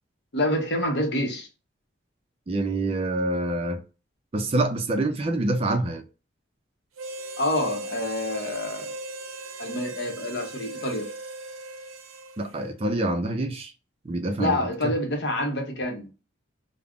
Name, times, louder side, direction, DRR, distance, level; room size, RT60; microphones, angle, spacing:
voice 1, 0.3-1.5 7.4-8.9 9.6-11.1 14.4-16.1, left 1 dB, 55° left, 0.7 m, -27 dB
voice 2, 2.5-3.8 4.3-6.0 12.4-13.7 14.0-14.6 14.8-14.9, right 2 dB, 30° right, 0.4 m, -26 dB
Harmonica, 7.0-12.6, right 2 dB, 85° right, 0.5 m, -38 dB
2.4 x 2.0 x 3.4 m
head